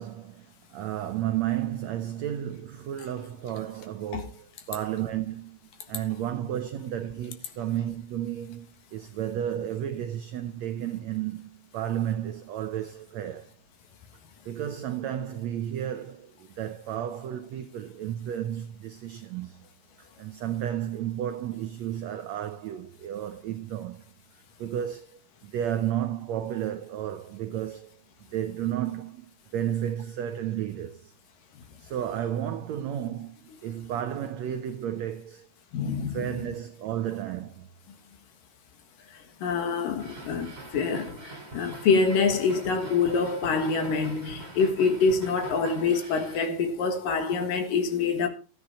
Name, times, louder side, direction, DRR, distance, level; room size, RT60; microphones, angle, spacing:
voice 1, 0.0-5.6 5.9-13.5 14.4-19.7 20.0-24.1 24.6-27.9 28.3-31.1 31.8-35.5 36.1-37.7, right 11 dB, 80° right, 1.5 m, -32 dB
voice 2, 35.7-36.3 39.1-48.3, left 4 dB, 70° left, 3.2 m, -26 dB
sound 1, 40.0-46.5, right 3 dB, 55° right, 0.4 m, -43 dB
13.5 x 9.5 x 4.3 m
omnidirectional pair, 4.2 m